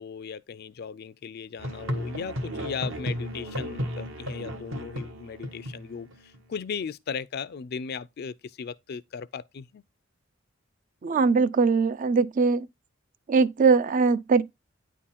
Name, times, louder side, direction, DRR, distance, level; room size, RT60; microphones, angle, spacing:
voice 1, 0.0-9.8, left 6 dB, 55° left, 0.4 m, -37 dB
Musical instrument, 1.6-6.4, equal, 75° right, 1.3 m, -34 dB
voice 2, 11.0-12.7 13.3-14.4, right 4 dB, 40° right, 0.4 m, -21 dB
9.3 x 3.7 x 4.2 m
head